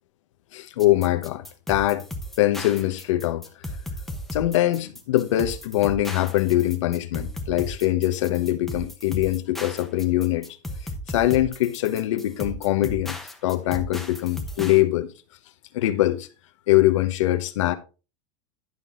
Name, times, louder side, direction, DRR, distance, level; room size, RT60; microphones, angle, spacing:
voice 1, 0.5-2.0 2.4-3.5 4.3-10.6 11.1-15.1 15.7-16.3 16.7-17.7, left 15 dB, 80° left, 1.0 m, -23 dB
sound 1, 0.8-14.8, left 1 dB, ahead, 0.9 m, -35 dB
11.0 x 6.0 x 3.7 m
supercardioid pair, 175°, 16 cm